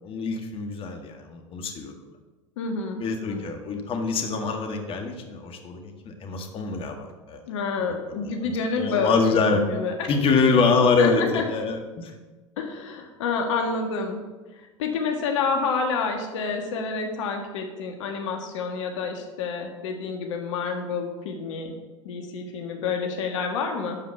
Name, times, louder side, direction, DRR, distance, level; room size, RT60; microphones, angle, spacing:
voice 1, 0.0-1.9 3.0-7.4 8.2-9.6 10.1-12.1, left 4 dB, 35° left, 3 dB, 1.8 m, -25 dB
voice 2, 2.6-3.0 3.3-3.4 7.5-10.1 11.0-11.4 12.6-14.2 14.5-21.7 22.0-24.0, left 4 dB, 65° left, 3 dB, 1.6 m, -28 dB
12.5 x 5.1 x 7.2 m, 1.2 s
hypercardioid pair, 85°, 17 cm